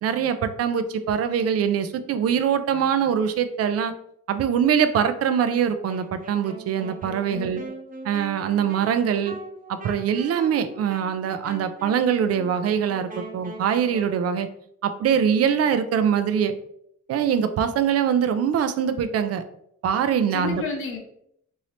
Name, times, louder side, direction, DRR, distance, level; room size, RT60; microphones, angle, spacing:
voice 1, 0.0-3.9 4.3-7.6 8.0-9.4 9.7-14.5 14.8-16.5 17.1-19.4 19.8-20.6, right 8 dB, 55° right, 11 dB, 0.4 m, -23 dB
Wind instrument woodwind instrument, 5.8-14.2, right 2 dB, 30° right, 0.7 m, -41 dB
voice 2, 7.2-7.8 20.3-21.0, left 4 dB, 45° left, 1 dB, 0.8 m, -32 dB
2.8 x 2.7 x 3.2 m, 0.71 s
cardioid pair, 90°, 30 cm